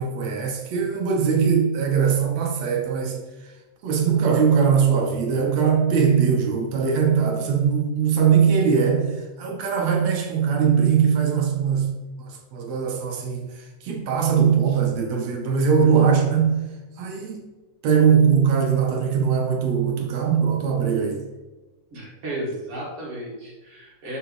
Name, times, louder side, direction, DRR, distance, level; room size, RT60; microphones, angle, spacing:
voice 1, 0.0-3.2 3.8-16.5 17.0-17.4 17.8-21.2, right 6 dB, 65° right, 2 dB, 2.0 m, -21 dB
voice 2, 21.9-24.2, right 1 dB, 50° right, -4 dB, 2.2 m, -33 dB
7.0 x 6.6 x 3.1 m, 1.2 s
omnidirectional pair, 3.9 m